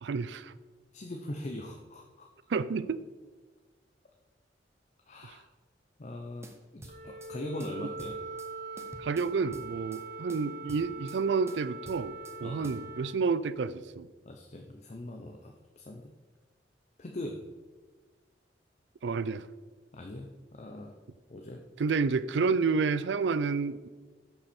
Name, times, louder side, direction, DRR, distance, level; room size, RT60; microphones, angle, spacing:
voice 1, 0.0-0.5 2.5-3.0 9.0-14.1 19.0-19.5 21.8-23.9, right 4 dB, 75° right, 16 dB, 0.4 m, -30 dB
voice 2, 0.9-2.3 5.1-5.5 6.0-8.2 12.4-12.7 14.2-16.1 17.0-17.4 19.9-20.9 21.3-21.6, left 1 dB, 40° left, 3 dB, 0.7 m, -41 dB
sound 1, 6.4-7.3 7.6-8.5 8.8-10.0 10.3-11.2 11.5-12.4 12.6-12.8, right 1 dB, 15° right, 0.7 m, -49 dB
Wind instrument woodwind instrument, 6.8-13.1, right 3 dB, 55° right, 1.3 m, -42 dB
12.5 x 5.6 x 4.3 m, 1.3 s
head